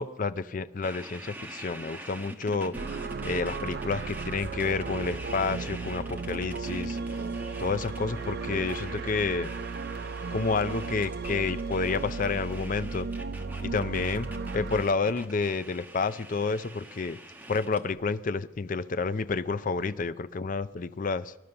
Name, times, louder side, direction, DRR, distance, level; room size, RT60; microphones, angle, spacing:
voice 1, 0.0-2.8 3.2-7.0 7.6-9.5 10.3-13.1 13.6-17.2 17.5-21.3, left 4 dB, 40° left, 13 dB, 0.5 m, -30 dB
sound 1, 0.8-17.9, right 1 dB, 10° right, 1.2 m, -45 dB
sound 2, 2.7-14.8, right 4 dB, 50° right, 0.5 m, -35 dB
19.0 x 11.0 x 6.9 m, 1.1 s
head